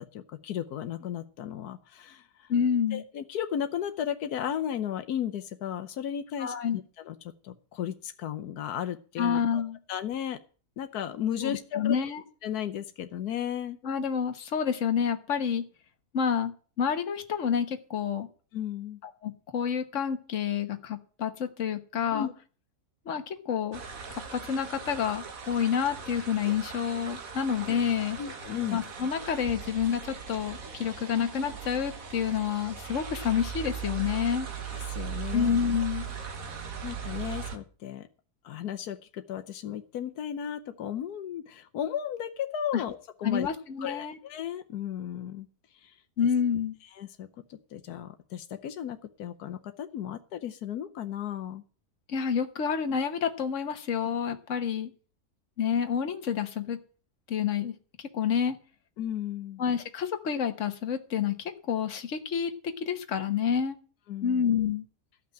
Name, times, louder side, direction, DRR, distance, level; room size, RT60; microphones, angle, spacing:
voice 1, 0.0-2.5 2.9-7.2 7.4-9.6 9.9-10.4 10.8-12.0 12.4-13.8 18.5-19.0 22.1-22.3 27.7-27.8 28.2-28.8 34.9-35.5 36.8-38.0 38.4-43.5 43.8-45.5 45.8-45.9 46.9-51.6 59.0-59.6 64.1-64.4, left 9 dB, 85° left, 8 dB, 1.3 m, -35 dB
voice 2, 2.5-3.0 6.4-6.8 9.2-9.8 11.4-12.2 13.8-15.6 16.1-16.5 16.8-18.3 19.0-22.3 23.1-23.8 24.1-28.2 28.7-34.5 35.3-36.0 42.7-42.8 43.2-44.2 46.2-46.8 52.1-54.9 55.6-56.8 57.3-58.6 59.6-63.8 64.2-64.9, left 7 dB, 55° left, 7 dB, 1.5 m, -29 dB
sound 1, 23.7-37.6, right 7 dB, 65° right, 1.8 m, -39 dB
13.5 x 6.0 x 8.7 m, 0.39 s
omnidirectional pair, 1.6 m